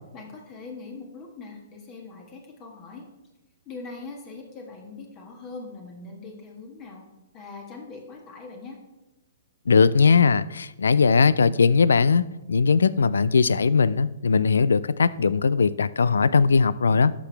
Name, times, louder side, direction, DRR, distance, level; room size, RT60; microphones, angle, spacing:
voice 1, 0.1-3.1 3.6-7.0 7.3-8.8, left 3 dB, 30° left, 1 dB, 1.5 m, -41 dB
voice 2, 9.7-17.1, left 5 dB, 75° left, 18 dB, 0.3 m, -19 dB
11.5 x 6.2 x 3.4 m, 1.1 s
hypercardioid pair, 125°, 0 cm